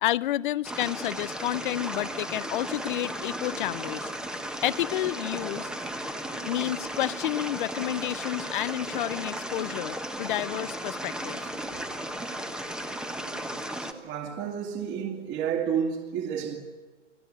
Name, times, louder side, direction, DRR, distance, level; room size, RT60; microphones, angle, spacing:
voice 1, 0.0-4.1 4.6-5.7 6.5-11.5, left 14 dB, 45° left, 0.7 m, -30 dB
sound 1, 0.6-13.9, right 1 dB, ahead, 1.3 m, -35 dB
voice 2, 13.8-16.6, right 7 dB, 30° right, 2.3 m, -31 dB
30.0 x 18.0 x 8.6 m
hypercardioid pair, 135°, 36 cm